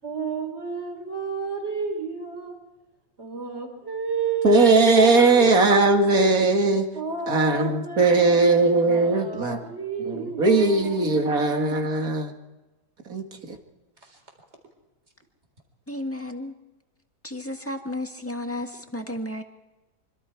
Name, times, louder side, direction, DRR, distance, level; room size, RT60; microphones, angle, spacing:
voice 1, 0.0-2.6 3.2-5.7 6.9-8.5 8.9-11.2 14.0-14.2, right 5 dB, 40° right, 4 dB, 4.2 m, -31 dB
voice 2, 4.4-6.9 7.3-9.6 10.1-12.3 13.1-13.6, right 3 dB, 55° right, 4 dB, 2.5 m, -19 dB
voice 3, 15.9-16.5 17.2-19.4, left 1 dB, 10° left, 4 dB, 1.6 m, -32 dB
25.5 x 25.0 x 4.7 m, 1.1 s
omnidirectional pair, 1.9 m